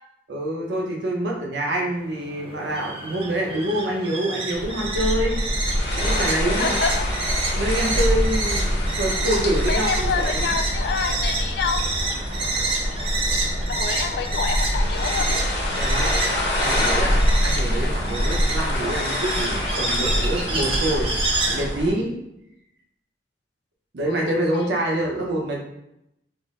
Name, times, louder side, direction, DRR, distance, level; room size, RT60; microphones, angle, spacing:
voice 1, 0.3-5.4 6.0-6.8 7.5-10.5 15.7-16.1 16.5-21.1 21.5-22.2 23.9-25.6, right 1 dB, 80° right, -1 dB, 0.7 m, -26 dB
sound 1, 1.9-21.6, right 2 dB, 30° right, 0.6 m, -29 dB
sound 2, 4.5-21.9, equal, 80° left, 1.0 m, -25 dB
voice 2, 6.6-7.1 9.7-11.9 13.7-15.3 24.5-24.7, left 5 dB, 65° left, 6 dB, 0.3 m, -27 dB
3.7 x 2.0 x 3.7 m, 0.82 s
head